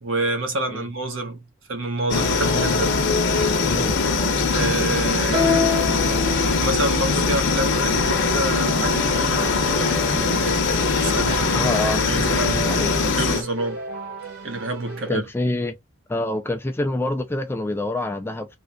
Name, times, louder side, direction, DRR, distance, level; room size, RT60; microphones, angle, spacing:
voice 1, 0.0-3.0 4.5-10.6 11.0-11.6 12.0-12.8 13.1-13.8 14.4-15.2, right 2 dB, 60° right, 1.0 m, -28 dB
sound 1, 2.1-13.4, left 4 dB, 55° left, 0.7 m, -21 dB
voice 2, 3.7-4.0 11.6-12.0 12.7-12.9 15.1-15.8 16.1-18.5, left 2 dB, 10° left, 0.3 m, -26 dB
sound 2, 5.3-7.1, left 5 dB, 30° right, 1.2 m, -25 dB
Keyboard (musical), 8.5-15.1, right 1 dB, 85° right, 1.3 m, -36 dB
3.6 x 2.7 x 2.2 m
head